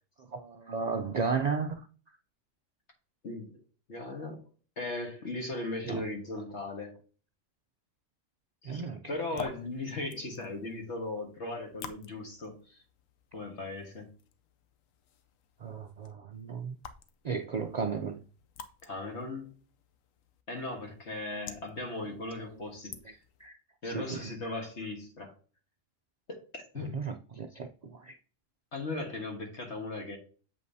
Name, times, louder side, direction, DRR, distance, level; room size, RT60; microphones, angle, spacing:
voice 1, 0.2-1.9 5.9-6.0 8.6-9.0 15.6-16.7 17.2-18.2 22.8-22.9 23.4-23.6 23.8-24.3 26.8-28.1, right 5 dB, 90° right, 0.3 m, -34 dB
voice 2, 3.9-4.4 4.8-7.0 8.6-12.8 13.3-14.1 18.8-19.5 20.5-22.9 23.8-25.3 26.3-26.9 28.7-30.2, left 2 dB, 60° left, 1.7 m, -38 dB
sound 1, 9.1-23.5, left 7 dB, 85° left, 1.1 m, -51 dB
7.7 x 5.2 x 2.7 m
omnidirectional pair, 1.3 m